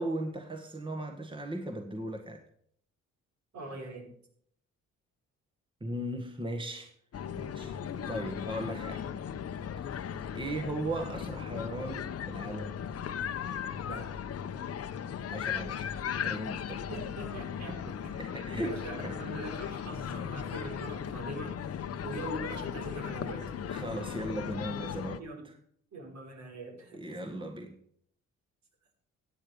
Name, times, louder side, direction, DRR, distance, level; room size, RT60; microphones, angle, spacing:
voice 1, 0.0-2.4 5.8-6.9 7.3-7.8 8.1-9.1 9.8-12.8 15.3-16.9 17.7-19.2 23.7-25.5 26.9-27.8, right 1 dB, 15° right, 1.7 m, -38 dB
voice 2, 3.5-4.1 13.9-14.1 16.9-18.1 18.6-21.6 22.0-23.5 25.2-25.5 25.9-27.4, right 1 dB, 65° right, 5.2 m, -42 dB
sound 1, 7.1-25.2, left 8 dB, 50° left, 1.0 m, -37 dB
15.0 x 9.2 x 5.2 m
cardioid pair, 90°, 30 cm